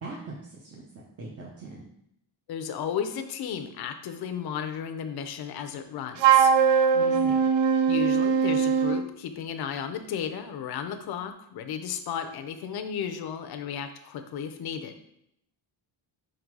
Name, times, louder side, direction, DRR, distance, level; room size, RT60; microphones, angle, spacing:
voice 1, 0.0-0.8 1.2-1.9 6.9-7.4, right 3 dB, 35° right, -3 dB, 0.8 m, -41 dB
voice 2, 2.5-6.5 7.9-15.0, left 8 dB, 60° left, 7 dB, 0.6 m, -34 dB
Wind instrument woodwind instrument, 6.2-9.1, right 6 dB, 75° right, 0.6 m, -21 dB
6.0 x 3.9 x 4.6 m, 0.75 s
wide cardioid pair, 175°, 43 cm